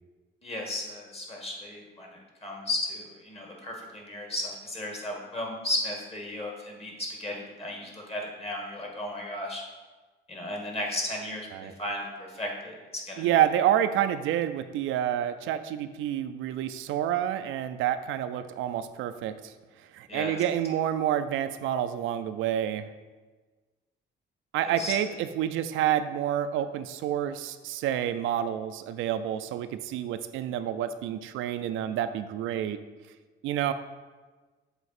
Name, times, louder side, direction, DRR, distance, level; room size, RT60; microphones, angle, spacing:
voice 1, 0.4-9.6 10.3-13.3 20.1-20.4 24.6-24.9, left 1 dB, 30° left, 0 dB, 1.8 m, -35 dB
voice 2, 13.2-19.5 19.9-22.9 24.5-32.8 33.4-33.7, right 10 dB, 85° right, 10 dB, 0.4 m, -28 dB
6.9 x 4.0 x 4.3 m, 1.3 s
cardioid pair, 90°, 20 cm